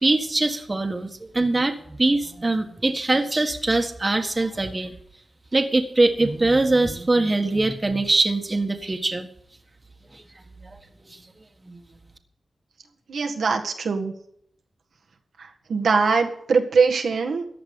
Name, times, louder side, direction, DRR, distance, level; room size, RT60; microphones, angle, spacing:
voice 1, 0.0-4.9 5.5-9.3 10.1-10.2 10.6-10.8 11.1-11.2 11.7-11.8, right 2 dB, 30° right, 5 dB, 1.7 m, -22 dB
voice 2, 13.1-14.1 15.7-17.5, right 4 dB, 90° right, 1 dB, 1.7 m, -21 dB
14.5 x 10.0 x 5.4 m, 0.68 s
wide cardioid pair, 80°, 0 cm